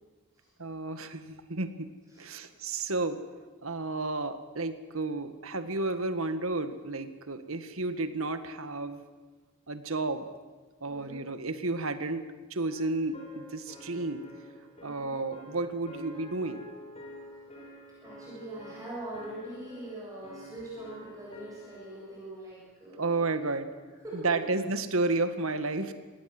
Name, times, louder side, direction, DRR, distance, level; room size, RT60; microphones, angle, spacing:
voice 1, 0.6-1.9 2.2-3.2 3.6-9.0 9.7-10.3 10.8-14.2 14.8-16.6 23.0-23.7 24.1-25.9, right 3 dB, 80° right, 10 dB, 1.8 m, -32 dB
voice 2, 2.1-2.4 10.8-11.2 14.8-15.1 18.0-23.3 24.0-24.5, right 1 dB, 15° right, -6 dB, 7.8 m, -42 dB
sound 1, 12.7-22.2, equal, 30° left, 5.1 m, -49 dB
26.5 x 19.5 x 7.9 m, 1.3 s
head